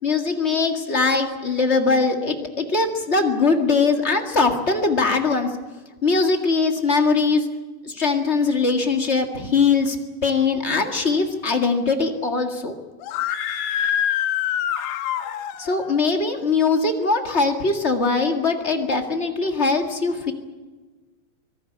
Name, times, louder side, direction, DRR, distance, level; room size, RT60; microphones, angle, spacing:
voice 1, 0.0-5.5 6.0-7.5 7.8-10.0 10.2-12.8 15.6-20.3, left 4 dB, 35° left, 4 dB, 1.1 m, -21 dB
Screaming, 13.0-15.8, left 10 dB, 90° left, 3.0 m, -25 dB
25.0 x 18.0 x 8.7 m, 1.3 s
omnidirectional pair, 4.2 m